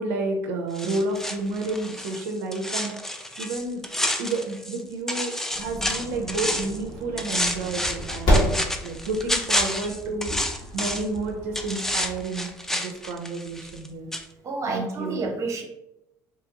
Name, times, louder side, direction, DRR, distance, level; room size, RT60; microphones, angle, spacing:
voice 1, 0.0-3.8 4.2-8.6 8.8-14.1 14.7-15.2, right 2 dB, 80° right, 2 dB, 0.4 m, -30 dB
sound 1, 0.8-4.8 5.1-6.8 7.2-11.2 11.5-13.9 14.1-14.2, left 1 dB, 5° left, 0.3 m, -29 dB
sound 2, 5.5-12.2, equal, 55° left, 1.2 m, -30 dB
voice 2, 14.4-15.6, right 3 dB, 35° right, 2 dB, 0.8 m, -29 dB
2.6 x 2.4 x 2.8 m, 0.86 s
hypercardioid pair, 75°, 9 cm